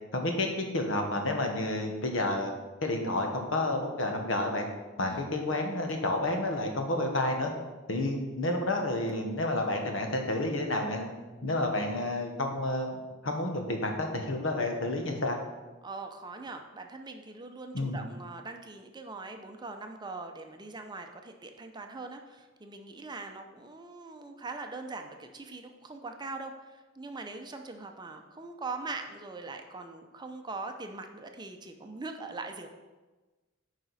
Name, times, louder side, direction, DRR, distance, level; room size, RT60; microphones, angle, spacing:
voice 1, 0.1-2.5 2.8-4.7 5.0-7.5 7.9-11.1 11.4-15.4 17.7-18.0, left 2 dB, 85° left, 3 dB, 1.2 m, -30 dB
voice 2, 5.0-5.3 15.8-32.7, right 3 dB, 20° right, 5 dB, 0.6 m, -42 dB
9.1 x 4.9 x 4.1 m, 1.2 s
head